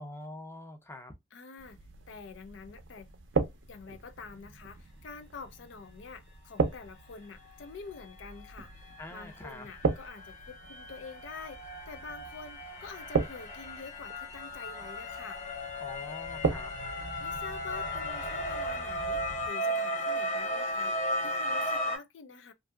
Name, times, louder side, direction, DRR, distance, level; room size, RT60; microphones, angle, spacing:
voice 1, 0.0-1.1 9.0-9.7 15.8-16.7, left 1 dB, 15° left, 0.5 m, -44 dB
voice 2, 1.3-1.8 2.1-3.1 3.7-8.9 9.1-15.4 17.2-22.5, left 4 dB, 75° left, 0.4 m, -47 dB
sound 1, 1.6-19.5, right 4 dB, 80° right, 0.5 m, -38 dB
sound 2, 7.4-7.5 7.9-22.0, left 1 dB, 40° left, 1.1 m, -36 dB
2.6 x 2.6 x 2.3 m
head